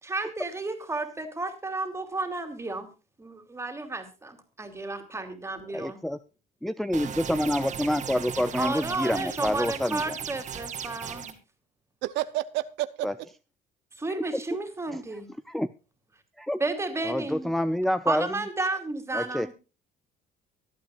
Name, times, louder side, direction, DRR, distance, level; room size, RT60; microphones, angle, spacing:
voice 1, 0.0-2.9 3.2-6.0 8.6-11.4 14.0-15.3 16.6-17.5 18.1-19.5, right 2 dB, 15° right, 6 dB, 3.0 m, -32 dB
voice 2, 5.7-6.2 6.6-10.1 13.0-13.1 14.2-14.3 14.9-15.0 15.5-15.7 16.4-16.6 17.0-18.4 19.1-19.5, left 1 dB, ahead, 14 dB, 0.5 m, -27 dB
sound 1, 6.9-11.3, right 7 dB, 45° right, 2.3 m, -37 dB
voice 3, 12.0-13.1, right 16 dB, 85° right, 14 dB, 0.8 m, -30 dB
24.0 x 8.5 x 2.4 m, 0.32 s
cardioid pair, 115°, 18 cm